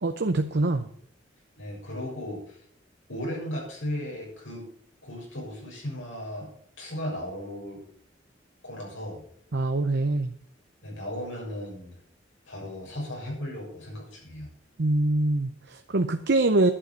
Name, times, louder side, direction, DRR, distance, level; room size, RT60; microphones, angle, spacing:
voice 1, 0.0-0.9 9.5-10.3 14.8-16.7, right 2 dB, 60° right, 7 dB, 0.7 m, -24 dB
voice 2, 1.6-2.6 3.1-4.7 5.0-7.8 8.6-9.2 10.8-12.0 12.5-14.5, left 1 dB, 85° left, -2 dB, 6.7 m, -36 dB
11.0 x 7.8 x 6.9 m, 0.63 s
head